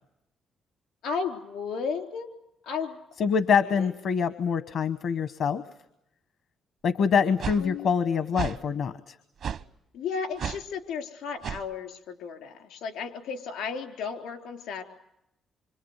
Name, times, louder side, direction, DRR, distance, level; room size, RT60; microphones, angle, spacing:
voice 1, 1.0-2.3 2.6-3.0 3.8-3.9 7.6-7.9 9.9-14.8, left 5 dB, 85° left, 6 dB, 3.9 m, -34 dB
voice 2, 3.2-5.6 6.8-9.1, left 6 dB, 70° left, 12 dB, 1.1 m, -25 dB
sound 1, 7.4-7.6 8.3-8.6 9.4-9.6 10.4-10.6 11.4-11.6, right 8 dB, 65° right, 0.9 m, -32 dB
26.0 x 25.5 x 8.2 m, 0.83 s
cardioid pair, 90°, 0 cm